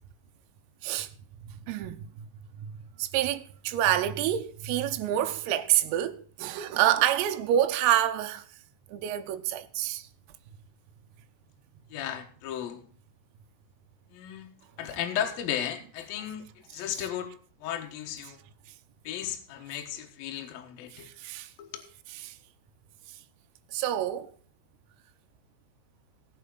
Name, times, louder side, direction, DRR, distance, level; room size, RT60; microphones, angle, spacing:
voice 1, 1.7-2.3 2.6-2.7 3.0-8.4 8.9-10.1 14.8-15.0 20.9-21.5 22.1-22.3 23.7-24.3, right 11 dB, 90° right, 3.5 m, -27 dB
voice 2, 11.9-12.8 14.1-14.5 14.8-16.4 16.7-17.3 17.6-18.4 19.0-21.1 21.6-21.8, left 10 dB, 65° left, 2.5 m, -35 dB
17.0 x 8.1 x 3.9 m
omnidirectional pair, 5.9 m